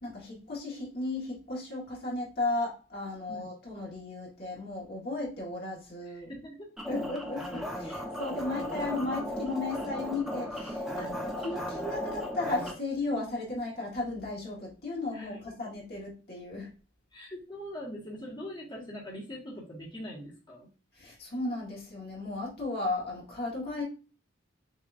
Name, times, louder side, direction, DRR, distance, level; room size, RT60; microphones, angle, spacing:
voice 1, 0.0-6.3 6.9-11.1 11.4-16.7 20.9-23.8, left 2 dB, 55° left, -3 dB, 1.7 m, -35 dB
voice 2, 6.0-7.1 11.0-11.2 15.1-15.4 17.1-20.7, equal, 25° left, -5 dB, 1.6 m, -42 dB
sound 1, 6.8-12.7, equal, 5° right, 0.9 m, -36 dB
6.4 x 2.9 x 2.6 m, 0.35 s
head